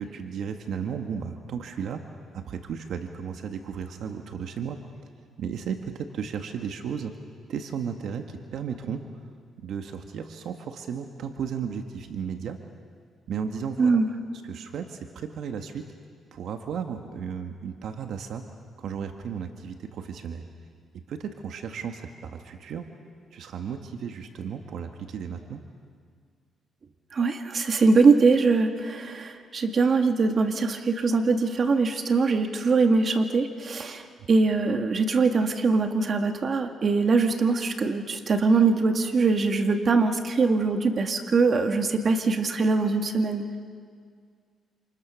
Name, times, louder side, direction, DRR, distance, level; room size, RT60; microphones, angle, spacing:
voice 1, 0.0-2.0 2.3-4.8 5.4-7.1 7.5-9.3 9.6-12.6 13.3-14.0 14.4-15.8 16.3-18.4 18.8-20.5 21.1-22.9 23.3-25.6 34.2-34.3, right 7 dB, 70° right, 5 dB, 1.6 m, -34 dB
voice 2, 27.1-43.6, right 4 dB, 45° right, 5 dB, 2.0 m, -22 dB
28.0 x 28.0 x 6.4 m, 2.1 s
cardioid pair, 90°, 0 cm